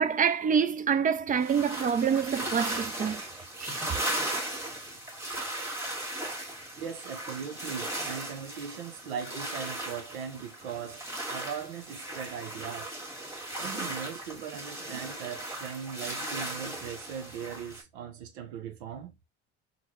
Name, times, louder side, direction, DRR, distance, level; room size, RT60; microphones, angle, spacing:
voice 1, 0.0-3.2 3.6-3.7, right 7 dB, 25° right, 0.4 m, -26 dB
sound 1, 1.4-17.8, right 1 dB, 10° right, 1.6 m, -37 dB
voice 2, 6.8-12.9 13.6-19.2, right 7 dB, 85° right, 0.7 m, -39 dB
3.7 x 2.1 x 3.0 m
hypercardioid pair, 85°, 32 cm